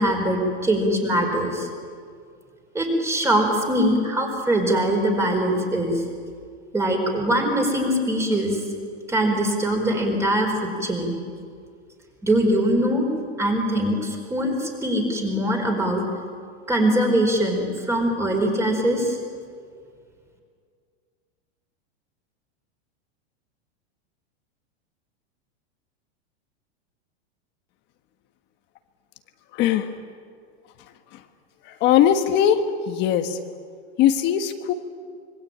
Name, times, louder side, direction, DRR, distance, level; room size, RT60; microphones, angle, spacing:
voice 1, 0.0-1.7 2.7-5.9 6.7-8.6 9.1-11.1 12.2-13.0 13.4-16.0 16.7-19.2, right 1 dB, 10° right, 2 dB, 4.7 m, -22 dB
voice 2, 29.6-29.9 31.8-33.4 34.0-34.7, left 10 dB, 30° left, 7 dB, 1.4 m, -20 dB
26.5 x 24.5 x 8.9 m, 2.2 s
supercardioid pair, 160°, 33 cm